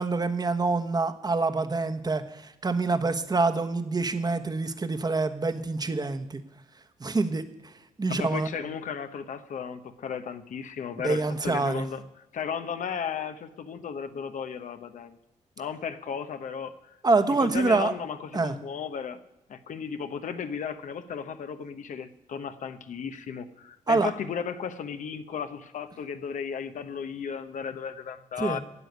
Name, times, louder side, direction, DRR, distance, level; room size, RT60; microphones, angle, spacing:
voice 1, 0.0-6.4 7.0-7.4 8.0-8.5 11.0-11.9 17.0-17.9 18.3-18.5 23.9-24.1 28.4-28.6, right 3 dB, 30° right, 9 dB, 1.2 m, -26 dB
voice 2, 8.1-12.0 12.3-15.2 15.6-17.0 17.4-19.2 19.5-28.6, left 7 dB, 70° left, 9 dB, 1.0 m, -35 dB
11.0 x 7.8 x 9.4 m, 0.88 s
cardioid pair, 65°, 14 cm